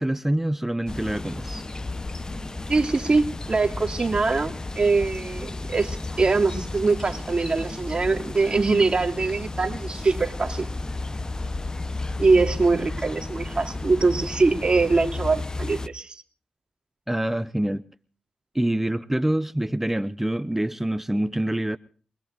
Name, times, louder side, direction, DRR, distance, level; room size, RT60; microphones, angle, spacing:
voice 1, 0.0-1.6 17.1-17.8 18.5-21.8, right 1 dB, 10° right, 0.6 m, -26 dB
sound 1, 0.9-15.9, left 2 dB, 30° left, 0.9 m, -33 dB
voice 2, 2.7-10.7 12.2-16.2, right 3 dB, 40° right, 2.5 m, -23 dB
24.5 x 20.0 x 2.6 m
cardioid pair, 65°, 2 cm